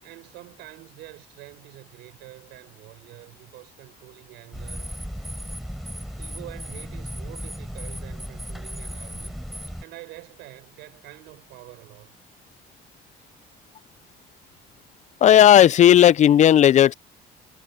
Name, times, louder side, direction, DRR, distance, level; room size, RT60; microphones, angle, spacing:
voice 1, 0.0-4.9 6.1-9.4 9.8-12.2, right 18 dB, 90° right, 6.7 m, -46 dB
sound 1, 4.5-9.8, equal, ahead, 6.7 m, -35 dB
voice 2, 15.2-16.9, left 11 dB, 45° left, 0.5 m, -13 dB
cardioid pair, 110°, 17 cm